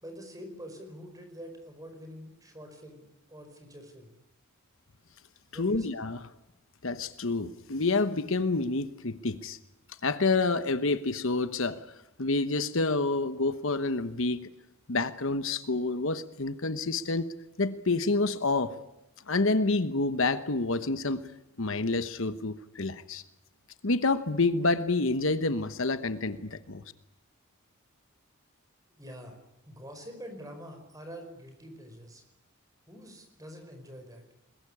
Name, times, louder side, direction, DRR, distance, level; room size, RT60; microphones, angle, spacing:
voice 1, 0.0-4.1 5.5-5.9 29.0-29.4 29.7-32.2 32.9-34.2, equal, 15° right, 6 dB, 5.1 m, -46 dB
voice 2, 5.6-6.3 6.8-9.6 10.0-11.8 12.2-14.4 14.9-17.3 17.6-18.8 19.3-21.3 21.6-23.2 23.8-26.8, left 3 dB, 60° left, 12 dB, 1.1 m, -28 dB
22.0 x 21.5 x 10.0 m, 0.90 s
head